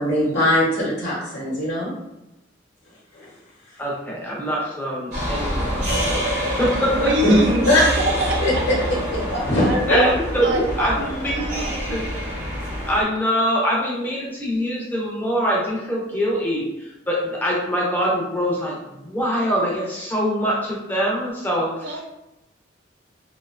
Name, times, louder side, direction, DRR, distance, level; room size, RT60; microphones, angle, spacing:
voice 1, 0.0-1.9 3.1-3.3 7.2-7.8 8.4-8.5 9.3-10.0, left 1 dB, 75° left, -8 dB, 0.9 m, -20 dB
voice 2, 3.8-7.4 9.9-12.3 12.9-22.0, equal, 10° left, -4 dB, 0.5 m, -24 dB
sound 1, 5.1-13.0, equal, 40° right, 0.7 m, -26 dB
voice 3, 6.7-8.9 9.6-11.9 21.8-22.0, right 1 dB, 65° right, 2 dB, 0.4 m, -27 dB
2.7 x 2.1 x 2.5 m, 0.92 s
head